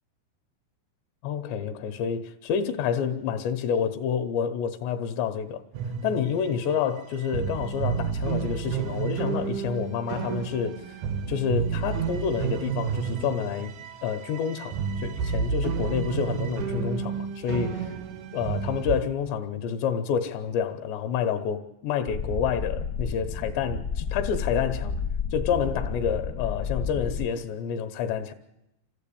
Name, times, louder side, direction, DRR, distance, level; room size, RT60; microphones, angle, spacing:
voice 1, 1.2-5.6 6.0-10.8 11.3-13.7 14.0-18.0 18.3-25.0 25.3-28.3, left 7 dB, 80° left, 3.1 m, -28 dB
sound 1, 5.7-6.7 7.0-7.1 7.2-19.0, right 7 dB, 85° right, 1.6 m, -31 dB
sound 2, 22.1-27.3, left 5 dB, 55° left, 1.2 m, -31 dB
26.5 x 15.0 x 8.6 m
omnidirectional pair, 5.2 m